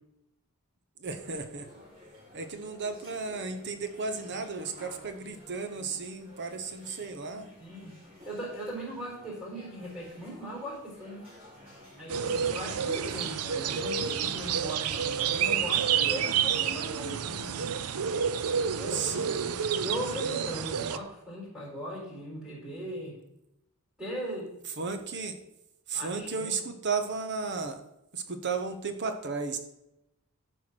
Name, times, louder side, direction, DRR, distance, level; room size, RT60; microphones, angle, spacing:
voice 1, 1.0-1.7 2.3-7.5 18.9-19.5 24.8-25.4 25.9-27.8 28.1-29.6, right 4 dB, 55° right, 8 dB, 0.9 m, -34 dB
sound 1, 1.1-16.4, left 1 dB, 25° right, 3.1 m, -52 dB
voice 2, 7.6-7.9 8.2-11.2 12.0-17.8 18.8-19.3 19.8-23.2 24.0-24.5 25.9-26.5, equal, 5° right, -5 dB, 4.3 m, -39 dB
sound 2, 12.1-21.0, right 8 dB, 85° right, 0.6 m, -29 dB
12.0 x 4.6 x 6.1 m, 0.84 s
head